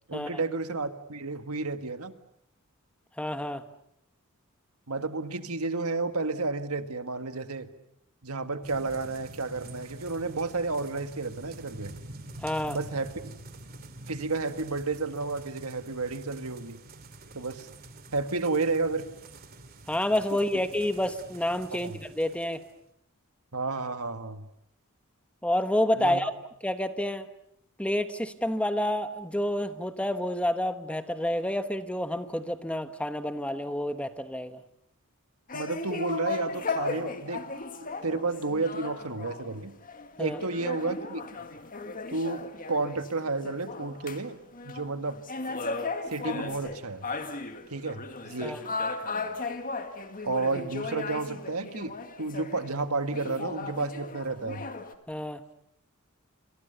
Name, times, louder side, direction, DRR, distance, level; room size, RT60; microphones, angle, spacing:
voice 1, 0.1-2.1 4.9-7.7 8.2-11.9 12.7-13.3 14.1-16.8 17.3-17.7 18.1-19.1 21.8-22.0 23.5-24.5 26.0-26.3 35.5-37.5 38.0-39.7 40.2-41.3 42.1-44.4 44.6-45.2 46.1-47.1 47.7-48.7 50.2-54.7, right 3 dB, 85° right, 9 dB, 1.8 m, -31 dB
voice 2, 3.2-3.6 12.4-12.8 19.9-22.6 25.4-26.3 26.6-27.3 27.8-34.6 40.2-40.4 48.4-48.6 55.1-55.4, left 1 dB, 5° left, 10 dB, 1.2 m, -29 dB
sound 1, 8.6-22.7, right 2 dB, 45° right, 2.8 m, -47 dB
sound 2, 35.5-44.3 44.5-52.7 53.1-54.9, left 3 dB, 40° left, 1.9 m, -36 dB
28.0 x 25.5 x 6.9 m, 0.76 s
head